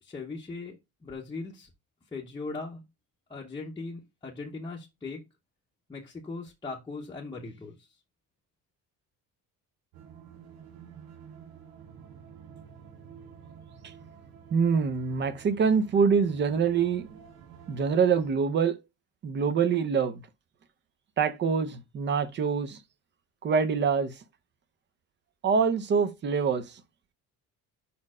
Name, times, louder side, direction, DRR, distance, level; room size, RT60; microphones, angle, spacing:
voice 1, 0.0-1.7 2.1-2.8 3.3-5.2 5.9-7.9, left 3 dB, 10° left, 0.8 m, -39 dB
sound 1, 9.9-18.3, right 7 dB, 85° right, 1.3 m, -50 dB
voice 2, 14.5-17.1 17.7-18.8 19.2-20.2 21.2-22.8 23.4-24.1 25.4-26.7, right 6 dB, 30° right, 0.6 m, -25 dB
5.4 x 4.3 x 4.8 m
cardioid pair, 170°, 36 cm